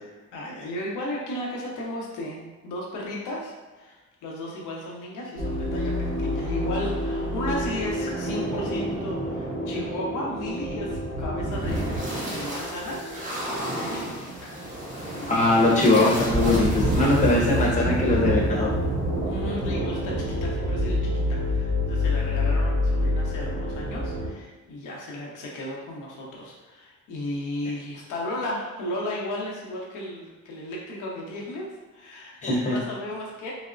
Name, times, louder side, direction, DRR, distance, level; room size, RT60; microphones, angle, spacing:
voice 1, 0.0-13.0 13.8-14.7 15.0-15.7 19.2-33.5, left 1 dB, 85° left, -3 dB, 0.8 m, -35 dB
sound 1, 5.4-24.3, equal, 25° right, 0.9 m, -27 dB
voice 2, 15.3-18.7 32.4-32.8, left 2 dB, 25° left, -5 dB, 1.0 m, -21 dB
4.0 x 2.0 x 2.4 m, 1.2 s
cardioid pair, 90°, 30 cm